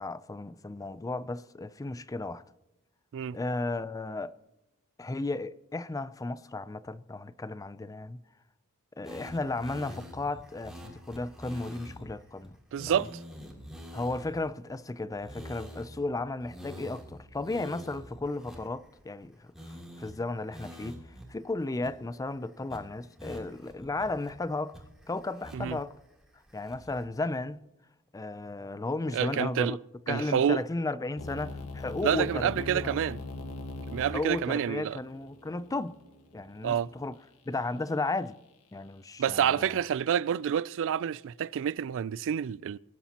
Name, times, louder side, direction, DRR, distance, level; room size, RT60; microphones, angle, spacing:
voice 1, 0.0-2.4 3.3-4.3 5.0-8.2 9.0-12.6 12.9-13.1 13.9-19.5 20.0-21.0 21.3-24.7 25.1-25.9 26.5-27.6 28.1-29.8 30.1-33.0 34.1-36.0 36.3-37.1 37.5-38.4 38.7-39.8, left 2 dB, 15° left, 0.4 m, -34 dB
sound 1, 9.0-12.0 12.4-12.5 12.8-14.5 15.1-16.1 16.4-19.2 19.5-20.1 20.5-21.2 21.5-21.6 21.8-22.3 22.7-22.8 23.2-24.3 24.7-25.8 26.2-27.0, equal, ahead, 3.1 m, -46 dB
voice 2, 12.7-13.2 25.5-25.8 29.1-29.8 30.1-30.6 32.0-33.2 33.9-35.0 36.6-36.9 39.2-42.8, right 8 dB, 60° right, 0.3 m, -28 dB
sound 2, 31.2-37.1, left 3 dB, 80° left, 1.6 m, -42 dB
23.0 x 11.5 x 2.9 m
head